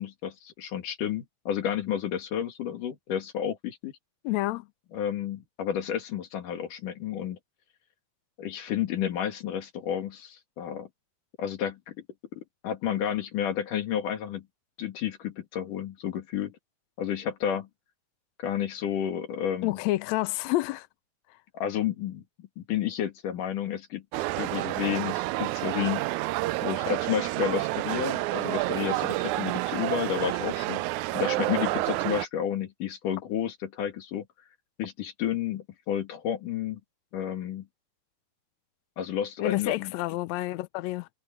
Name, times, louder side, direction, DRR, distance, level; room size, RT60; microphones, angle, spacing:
voice 1, 0.0-3.9 4.9-7.4 8.4-10.9 11.4-12.0 12.3-14.5 14.8-16.6 17.0-17.7 18.4-19.8 21.5-24.0 24.4-26.1 26.6-30.8 31.1-34.2 34.8-36.8 37.1-37.7 39.0-39.9, left 9 dB, 70° left, 3.6 m, -31 dB
voice 2, 4.2-4.7 19.6-20.9 39.4-41.1, left 18 dB, 85° left, 1.5 m, -29 dB
sound 1, 24.1-32.3, right 19 dB, 90° right, 1.7 m, -29 dB
omnidirectional pair, 3.9 m